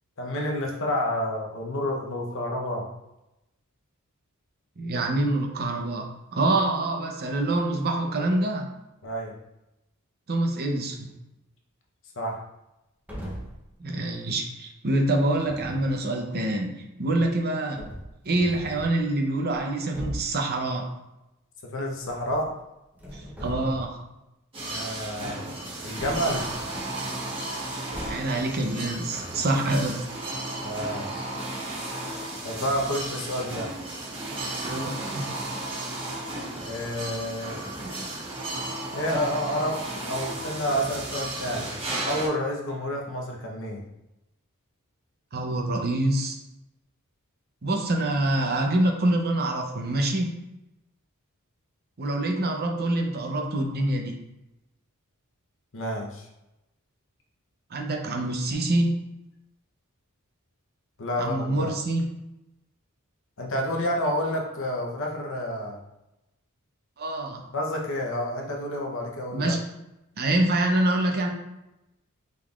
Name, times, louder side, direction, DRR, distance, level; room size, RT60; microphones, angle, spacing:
voice 1, 0.2-2.9 9.0-9.3 12.2-12.4 21.7-22.5 24.6-25.4 25.8-26.5 30.6-31.3 32.4-33.7 36.6-37.6 38.9-41.8 42.0-43.8 55.7-56.3 61.0-61.7 63.4-65.8 67.5-69.5, equal, 60° left, 0 dB, 0.8 m, -29 dB
voice 2, 4.8-8.6 10.3-11.1 13.8-17.8 18.2-20.9 23.1-24.0 28.1-30.1 34.6-35.2 45.3-46.4 47.6-50.3 52.0-54.1 57.7-58.9 61.2-62.1 67.0-67.5 69.3-69.6 70.2-71.3, right 1 dB, 45° right, 2 dB, 0.7 m, -26 dB
sound 1, 13.1-13.7 15.3-16.0 17.2-17.3 17.8-19.0 19.5-19.6 19.9-20.4 22.0-22.6 22.9-24.1 26.0-26.9 27.9-28.4, equal, 5° right, 0.8 m, -39 dB
sound 2, 24.5-42.3, right 2 dB, 25° right, 1.2 m, -34 dB
5.2 x 3.6 x 2.4 m, 0.93 s
head